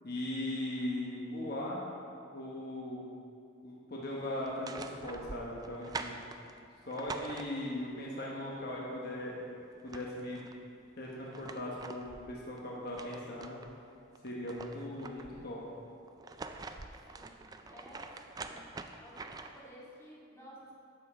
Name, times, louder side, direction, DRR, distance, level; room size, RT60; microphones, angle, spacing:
voice 1, 0.0-1.9 2.3-3.1 3.6-6.2 6.9-9.5 9.8-10.4 11.0-13.6 14.2-15.6, left 1 dB, 55° left, -4 dB, 1.1 m, -39 dB
sound 1, 4.4-7.9 9.4-9.5 9.7-10.6 11.1-13.7 14.1-15.5 16.1-19.7, right 3 dB, 20° right, 0.3 m, -45 dB
voice 2, 17.1-18.6 19.0-20.7, equal, 15° left, -7 dB, 1.9 m, -54 dB
9.2 x 7.7 x 4.2 m, 2.5 s
head